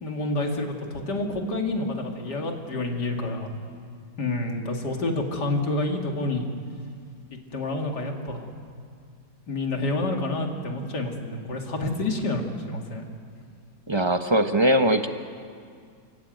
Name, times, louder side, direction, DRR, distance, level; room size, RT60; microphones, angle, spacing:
voice 1, 0.0-3.6 4.2-6.5 7.5-8.5 9.5-13.1, left 2 dB, 65° left, 2 dB, 2.9 m, -28 dB
voice 2, 13.9-15.1, right 1 dB, 25° right, 7 dB, 0.7 m, -21 dB
29.0 x 15.5 x 9.2 m, 2.2 s
omnidirectional pair, 1.9 m